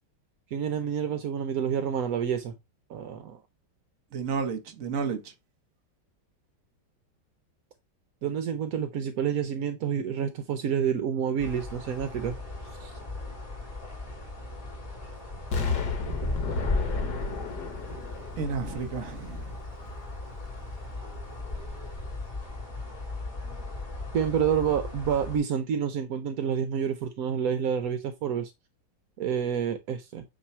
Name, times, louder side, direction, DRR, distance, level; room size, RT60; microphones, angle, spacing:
voice 1, 0.5-2.5 2.9-3.4 8.2-12.4 12.8-12.9 24.1-28.5 29.2-30.2, right 8 dB, 65° right, 0.9 m, -28 dB
voice 2, 4.1-5.3 18.4-19.4, right 5 dB, 50° right, 1.2 m, -31 dB
sound 1, 11.4-25.4, left 2 dB, 25° left, 3.1 m, -36 dB
Explosion, 15.5-19.4 19.9-20.0, left 4 dB, 60° left, 1.6 m, -33 dB
8.6 x 3.2 x 4.4 m
omnidirectional pair, 2.2 m